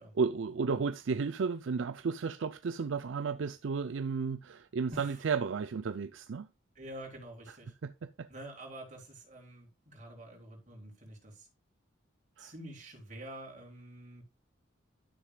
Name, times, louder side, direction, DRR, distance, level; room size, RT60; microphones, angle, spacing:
voice 1, 0.1-6.5 7.8-8.3 12.4-12.5, right 5 dB, 65° right, 0.4 m, -33 dB
voice 2, 6.8-7.7 8.3-11.5 12.4-14.2, right 1 dB, 35° right, 3.8 m, -47 dB
12.0 x 6.7 x 2.3 m
head